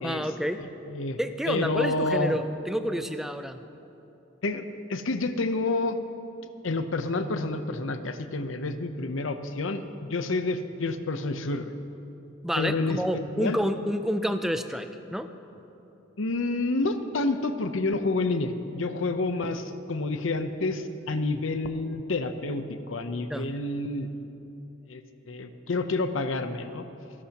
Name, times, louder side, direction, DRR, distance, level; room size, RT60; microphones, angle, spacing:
voice 1, 0.0-0.6 1.2-3.6 12.4-15.3 23.3-23.5, equal, ahead, 8 dB, 0.5 m, -29 dB
voice 2, 0.6-1.2 1.5-2.4 4.4-6.0 6.6-9.8 10.1-11.7 12.6-13.6 16.2-24.1 24.9-25.0 25.3-26.9, left 2 dB, 80° left, 9 dB, 0.8 m, -29 dB
28.5 x 11.0 x 3.0 m, 2.9 s
head